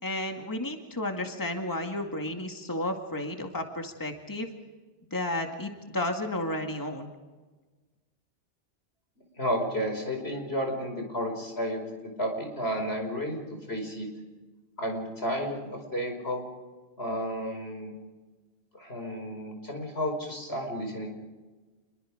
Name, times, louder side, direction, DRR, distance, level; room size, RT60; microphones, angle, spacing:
voice 1, 0.0-4.5 5.1-7.1, left 1 dB, 20° left, 3 dB, 2.1 m, -32 dB
voice 2, 9.4-11.8 12.2-13.4 13.7-14.1 14.8-16.4 17.0-17.9 18.8-21.1, equal, 75° left, 3 dB, 5.3 m, -32 dB
28.0 x 22.5 x 5.0 m, 1.3 s
omnidirectional pair, 1.1 m